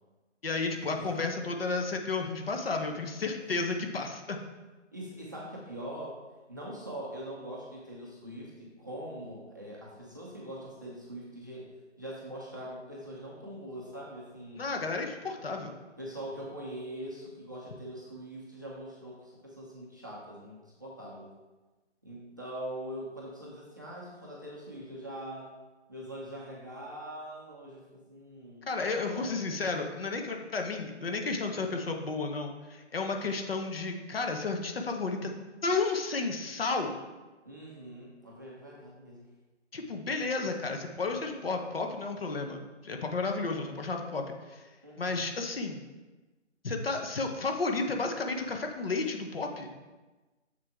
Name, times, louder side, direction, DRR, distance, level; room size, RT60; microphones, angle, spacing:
voice 1, 0.4-4.4 14.6-15.7 28.7-35.3 35.6-37.0 39.7-44.2 44.5-44.6 45.0-45.8 46.6-49.7, left 3 dB, 55° left, 4 dB, 1.1 m, -32 dB
voice 2, 4.9-6.2 6.5-11.7 12.0-14.7 16.0-21.3 22.0-25.5 25.9-30.1 37.4-39.3 44.8-45.2, right 1 dB, 15° right, -5 dB, 0.6 m, -43 dB
6.9 x 6.5 x 3.6 m, 1.2 s
hypercardioid pair, 165°, 36 cm